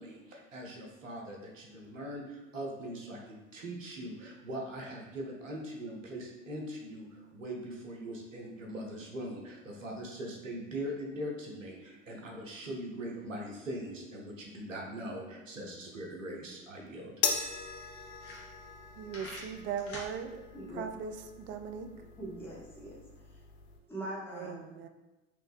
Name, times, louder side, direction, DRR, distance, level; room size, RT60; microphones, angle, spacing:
voice 1, 0.0-17.1, right 1 dB, 85° right, 0 dB, 0.8 m, -41 dB
sound 1, 17.1-17.2 17.7-17.8 18.1-18.8 19.1-20.1, left 2 dB, 35° left, 1.3 m, -45 dB
sound 2, 17.2-23.8, left 6 dB, 55° left, 0.6 m, -39 dB
voice 2, 19.0-20.4 20.8-21.9 24.3-24.9, right 7 dB, 35° right, 7 dB, 0.4 m, -39 dB
voice 3, 20.5-20.8 22.2-23.0 23.9-24.6, right 1 dB, 5° left, -5 dB, 1.1 m, -41 dB
3.4 x 3.1 x 3.3 m, 1.1 s
figure-of-eight pair, 70°, 38 cm